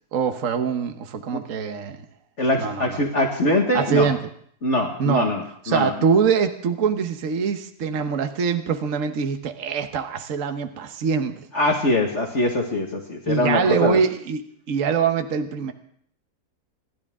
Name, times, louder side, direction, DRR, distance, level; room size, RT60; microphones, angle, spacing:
voice 1, 0.1-2.0 2.5-3.0 3.7-4.2 5.0-5.3 5.6-11.3 13.3-14.4 14.7-15.7, right 6 dB, 55° right, 7 dB, 1.4 m, -23 dB
voice 2, 2.4-4.1 4.6-5.9 11.5-14.0, left 1 dB, 45° left, 1 dB, 2.0 m, -23 dB
28.0 x 11.5 x 3.7 m, 0.64 s
omnidirectional pair, 1.7 m